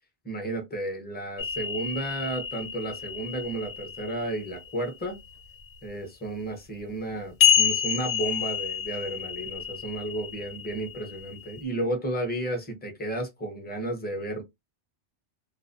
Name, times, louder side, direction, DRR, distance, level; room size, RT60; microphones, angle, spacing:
voice 1, 0.2-5.2 5.8-14.4, right 1 dB, 10° left, 0.5 m, -33 dB
sound 1, 1.4-4.6 7.4-11.6, left 8 dB, 70° left, 0.8 m, -28 dB
2.4 x 2.1 x 2.5 m
omnidirectional pair, 1.2 m